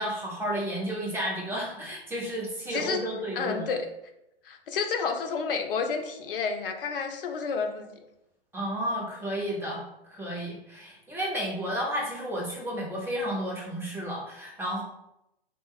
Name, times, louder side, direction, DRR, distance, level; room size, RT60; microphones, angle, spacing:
voice 1, 0.0-3.7 8.5-9.8 10.1-14.8, equal, 5° right, -5 dB, 1.0 m, -32 dB
voice 2, 2.7-3.0 3.3-3.9 4.4-7.9, left 5 dB, 60° left, 5 dB, 0.6 m, -30 dB
3.3 x 3.0 x 3.1 m, 0.85 s
figure-of-eight pair, 105°, 31 cm